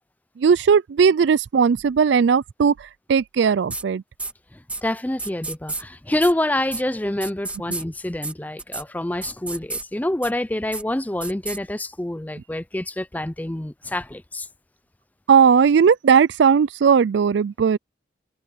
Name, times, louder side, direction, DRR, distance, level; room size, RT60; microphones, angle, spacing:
voice 1, 0.4-4.0 15.3-17.8, right 6 dB, 70° right, 0.4 m, -17 dB
sound 1, 3.7-3.8 4.2-4.3 4.7-4.8 5.2-5.8 6.2-6.3 6.7-6.8 7.2-7.8 8.2-8.3 8.6-8.8 9.2-9.8 10.2-10.3 10.7-10.8 11.2-11.6, right 3 dB, 5° right, 3.3 m, -31 dB
voice 2, 4.5-14.5, left 1 dB, 10° left, 0.4 m, -27 dB
head